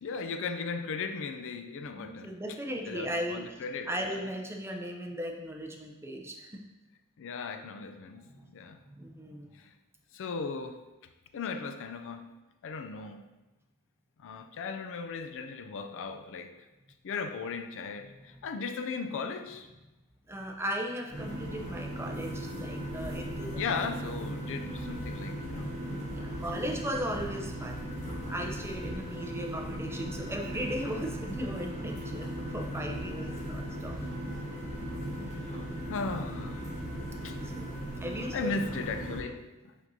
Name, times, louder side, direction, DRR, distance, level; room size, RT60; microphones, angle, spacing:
voice 1, 0.0-2.4 2.9-4.3 7.2-8.8 9.6-9.7 10.1-10.8 11.3-12.3 12.6-13.2 14.2-16.5 17.0-19.7 23.5-25.8 34.4-34.5 35.1-36.6 37.2-37.4 38.3-39.4, left 4 dB, 60° left, 8 dB, 0.4 m, -37 dB
voice 2, 2.0-3.6 3.9-6.5 8.4-8.5 8.9-9.6 18.2-18.5 20.3-23.5 25.9-27.8 28.3-34.0 36.6-37.1 37.4-38.6, equal, 10° right, 1 dB, 0.6 m, -37 dB
sound 1, 21.1-39.2, equal, 30° left, 1.3 m, -37 dB
6.0 x 5.8 x 2.7 m, 1.0 s
head